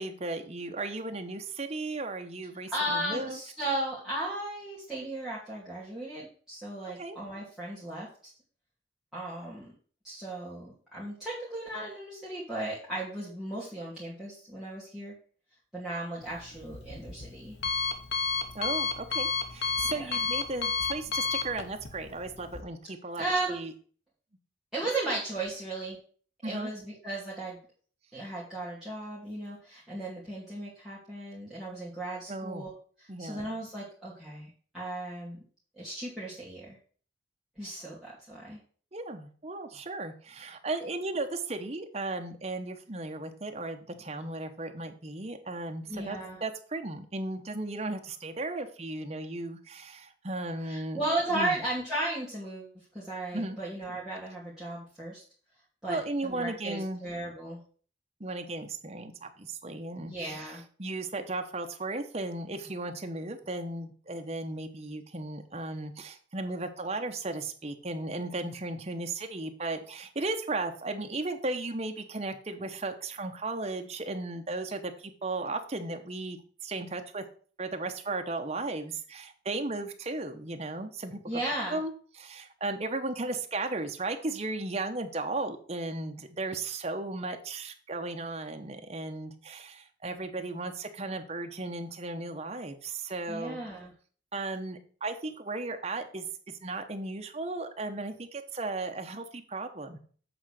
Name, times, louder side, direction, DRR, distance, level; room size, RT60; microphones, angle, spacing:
voice 1, 0.0-3.4 7.0-7.2 18.5-23.7 26.4-26.7 32.3-32.7 33.1-33.4 38.9-51.0 51.3-51.6 53.3-53.6 55.9-57.0 58.2-60.5 60.8-77.2 77.6-81.4 81.7-93.6 94.3-96.3 96.6-100.0, right 2 dB, 35° right, 5 dB, 0.9 m, -35 dB
voice 2, 2.7-8.1 9.1-9.7 10.0-15.1 15.7-17.6 19.9-20.0 23.2-23.6 24.7-26.0 26.4-27.6 28.1-32.7 33.2-34.5 34.7-35.4 35.8-36.8 37.6-38.6 45.9-46.4 50.6-55.2 55.8-57.6 60.0-60.6 81.3-81.8 93.3-93.9, right 1 dB, 5° right, -10 dB, 2.3 m, -35 dB
Alarm, 16.2-22.6, left 5 dB, 65° left, 1.0 m, -32 dB
8.0 x 3.9 x 6.4 m, 0.43 s
head